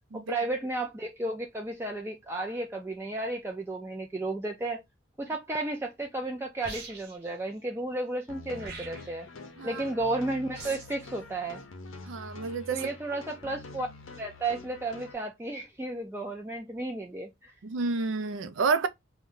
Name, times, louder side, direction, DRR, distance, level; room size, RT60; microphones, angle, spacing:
voice 1, 0.1-4.8 5.2-9.3 9.6-11.6 12.7-13.9 14.2-17.5, right 2 dB, 10° right, 0.3 m, -33 dB
sound 1, 6.6-7.3 8.6-9.3 10.6-11.0, right 4 dB, 50° right, 0.9 m, -43 dB
sound 2, 8.3-15.1, left 3 dB, 90° left, 0.6 m, -46 dB
voice 2, 12.0-12.8 17.6-18.9, right 4 dB, 80° right, 0.4 m, -29 dB
2.6 x 2.2 x 3.5 m
head